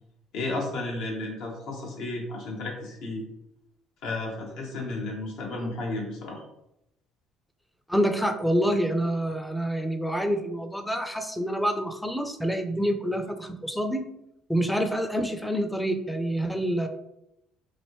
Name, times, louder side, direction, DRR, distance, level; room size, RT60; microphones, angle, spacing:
voice 1, 0.3-3.2 4.0-6.4, left 2 dB, 70° left, -1 dB, 1.0 m, -33 dB
voice 2, 7.9-14.1 14.5-16.9, equal, 5° left, 7 dB, 0.5 m, -27 dB
3.1 x 2.6 x 3.0 m, 0.84 s
hypercardioid pair, 65°, 0 cm